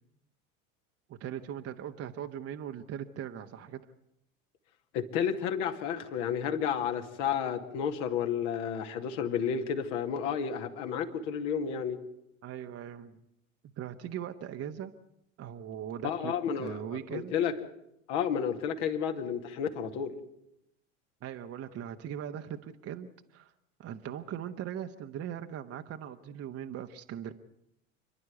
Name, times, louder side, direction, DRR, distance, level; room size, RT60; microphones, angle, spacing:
voice 1, 1.1-3.8 12.4-13.2 13.8-14.9 15.4-17.4 21.2-23.5 23.8-27.3, right 9 dB, 35° right, 6 dB, 1.2 m, -40 dB
voice 2, 4.9-12.0 16.0-16.8 17.1-17.5 18.1-20.1, left 7 dB, 60° left, 5 dB, 2.5 m, -31 dB
28.5 x 11.0 x 9.6 m, 0.81 s
hypercardioid pair, 80°, 41 cm